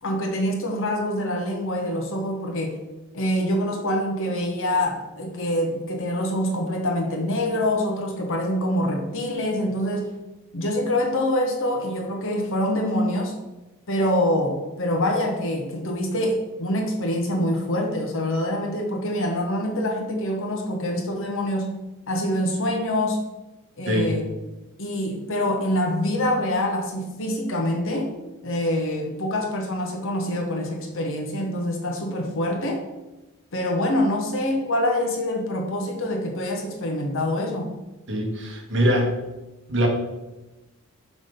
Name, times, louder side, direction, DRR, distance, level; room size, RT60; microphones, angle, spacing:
voice 1, 0.0-2.8 3.1-10.1 10.5-13.3 13.9-21.7 22.1-23.2 23.8-24.2 24.8-28.1 28.4-32.8 33.5-37.7, left 1 dB, 65° left, 2 dB, 1.3 m, -25 dB
voice 2, 38.1-39.1 39.7-39.9, equal, 55° right, 1 dB, 1.5 m, -22 dB
6.4 x 3.6 x 5.2 m, 1.1 s
head